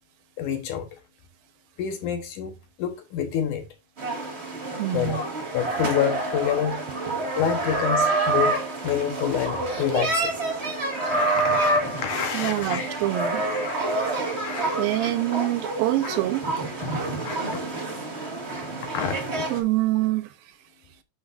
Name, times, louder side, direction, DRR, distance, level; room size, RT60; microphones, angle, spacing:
voice 1, 0.4-0.9 1.8-3.7 4.9-5.2 5.5-6.8 7.4-8.5 8.8-10.3 10.9-12.9 13.5-13.7 14.4-15.1 16.8-17.6 18.9-19.2, left 9 dB, 70° left, 2.5 m, -28 dB
sound 1, 4.0-19.6, right 2 dB, 25° right, 1.6 m, -27 dB
voice 2, 4.8-5.2 12.3-13.5 14.8-16.5 19.5-20.3, right 15 dB, 85° right, 2.7 m, -25 dB
11.0 x 6.1 x 2.6 m
omnidirectional pair, 4.1 m